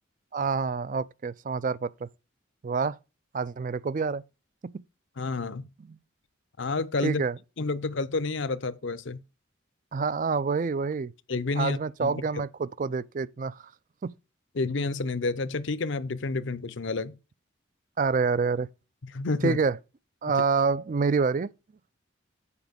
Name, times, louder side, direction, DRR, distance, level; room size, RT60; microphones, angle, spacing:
voice 1, 0.3-2.1 2.6-3.0 3.3-4.2 4.6-4.7 5.9-6.0 7.0-7.4 9.9-11.1 11.6-13.6 14.0-14.1 18.0-18.7 19.4-19.8 20.2-21.5, right 5 dB, 40° right, 0.4 m, -27 dB
voice 2, 5.2-5.7 6.6-7.2 7.6-9.2 11.3-12.2 14.5-17.2 19.1-19.6, left 3 dB, 65° left, 0.7 m, -29 dB
8.4 x 5.0 x 5.1 m
head